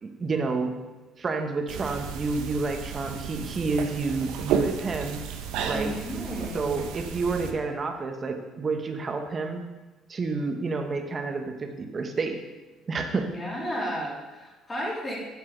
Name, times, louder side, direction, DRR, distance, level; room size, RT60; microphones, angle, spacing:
voice 1, 0.0-0.7 1.2-5.2 5.6-5.9 6.5-9.6 10.1-12.4 12.9-13.3, right 3 dB, 30° right, 5 dB, 1.0 m, -29 dB
sound 1, 1.7-7.5, right 7 dB, 85° right, 0.7 m, -33 dB
voice 2, 5.7-6.8 13.2-15.2, equal, 25° left, -4 dB, 2.5 m, -33 dB
7.6 x 7.3 x 3.8 m, 1.1 s
cardioid pair, 120°, 0 cm